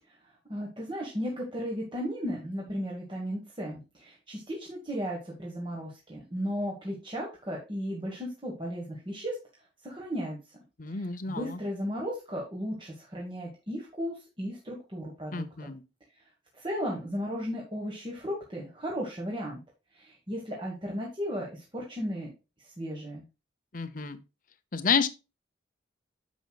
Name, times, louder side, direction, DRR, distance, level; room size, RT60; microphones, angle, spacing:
voice 1, 0.5-9.4 9.8-10.4 10.9-11.0 11.3-15.7 16.2-16.3 16.5-19.6 19.9-22.3 22.6-23.2, equal, 25° right, 1.4 m, -35 dB
voice 2, 10.8-11.6 15.3-15.8 23.7-24.2 24.7-25.1, left 5 dB, 45° left, 0.7 m, -29 dB
9.2 x 6.2 x 2.3 m
head